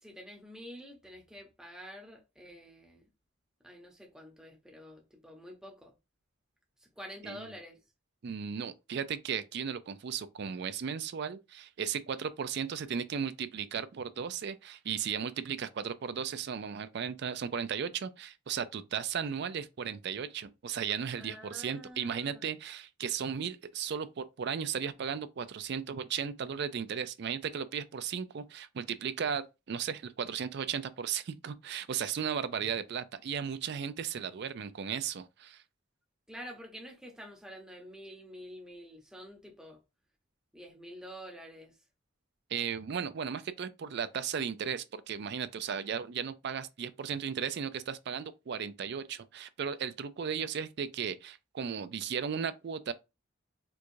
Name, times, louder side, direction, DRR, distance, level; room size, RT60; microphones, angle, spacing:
voice 1, 0.0-3.0 3.6-5.9 6.8-7.8 21.2-22.5 36.3-39.8 40.5-41.8, equal, 5° right, 0.8 m, -48 dB
voice 2, 8.2-35.6 42.5-52.9, right 7 dB, 55° right, 0.4 m, -35 dB
4.5 x 2.4 x 2.6 m
head